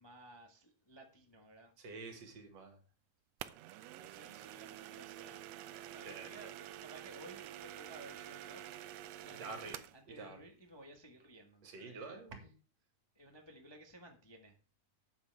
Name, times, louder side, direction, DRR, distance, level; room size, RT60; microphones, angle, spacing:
voice 1, 0.0-1.7 4.0-6.5 6.8-8.8 9.2-12.2 13.1-14.5, right 1 dB, 45° left, 2 dB, 0.3 m, -56 dB
voice 2, 1.8-2.8 6.0-6.5 9.3-10.4 11.6-12.5, right 4 dB, 60° right, 4 dB, 3.0 m, -48 dB
sound 1, 3.4-10.0, right 13 dB, 75° right, 1.6 m, -49 dB
12.5 x 8.5 x 3.5 m, 0.36 s
omnidirectional pair, 3.3 m